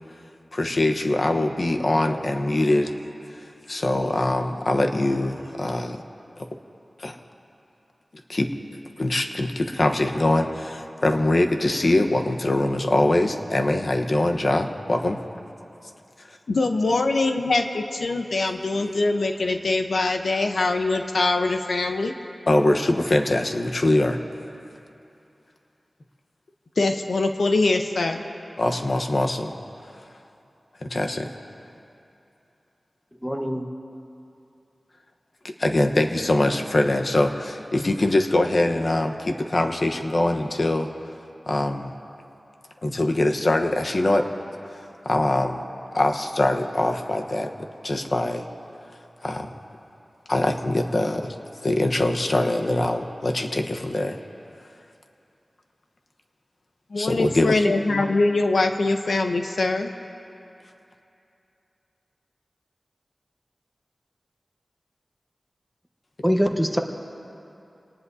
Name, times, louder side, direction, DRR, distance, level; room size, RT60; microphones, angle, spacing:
voice 1, 0.5-2.9 3.7-6.0 7.0-7.2 8.3-8.5 9.0-15.2 17.3-17.4 22.5-24.2 28.6-29.5 30.8-31.3 35.6-40.9 41.5-41.9 42.8-44.3 45.0-45.6 45.9-47.5 47.8-48.4 49.2-49.5 50.3-51.3 51.6-54.2 57.0-57.6, left 1 dB, 50° left, 4 dB, 1.1 m, -23 dB
voice 2, 16.5-22.1 26.8-28.2 56.9-59.9, left 3 dB, 80° left, 5 dB, 0.9 m, -23 dB
voice 3, 33.2-33.6 57.9-58.1 66.2-66.8, equal, 5° left, 3 dB, 1.1 m, -24 dB
27.5 x 19.0 x 2.8 m, 2.8 s
wide cardioid pair, 85°, 0 cm